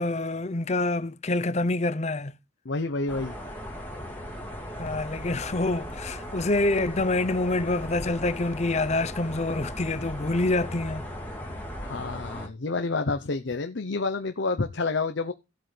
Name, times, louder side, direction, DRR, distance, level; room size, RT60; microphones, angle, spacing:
voice 1, 0.0-2.3 4.8-11.1, left 2 dB, 35° left, 0.7 m, -26 dB
voice 2, 2.6-3.4 11.8-15.3, left 3 dB, 70° left, 0.8 m, -29 dB
sound 1, 3.1-12.5, equal, 10° left, 2.3 m, -37 dB
15.0 x 7.8 x 3.3 m
head